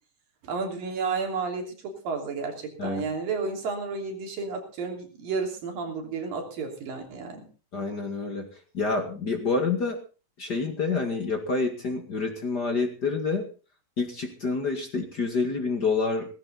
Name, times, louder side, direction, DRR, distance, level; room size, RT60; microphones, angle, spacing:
voice 1, 0.4-7.5, right 4 dB, 90° right, 3 dB, 5.0 m, -32 dB
voice 2, 7.7-10.0 10.4-13.5 14.0-16.4, left 4 dB, 35° left, 5 dB, 2.1 m, -28 dB
18.0 x 15.0 x 4.1 m, 0.34 s
omnidirectional pair, 3.9 m